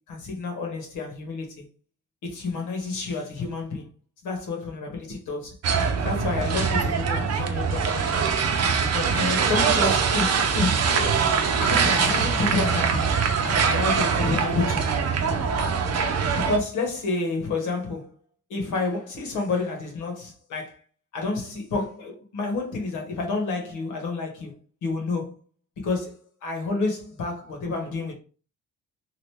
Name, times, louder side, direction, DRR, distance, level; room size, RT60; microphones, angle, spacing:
voice 1, 0.1-1.6 2.2-3.9 4.2-5.6 6.0-8.3 8.8-13.2 13.4-15.0 16.4-18.1 18.5-20.8 21.1-25.4 25.8-28.1, left 3 dB, 80° left, 1.3 m, -29 dB
sound 1, 5.6-16.6, right 6 dB, 60° right, 0.7 m, -23 dB
3.0 x 2.5 x 3.3 m
cardioid pair, 90°, 30 cm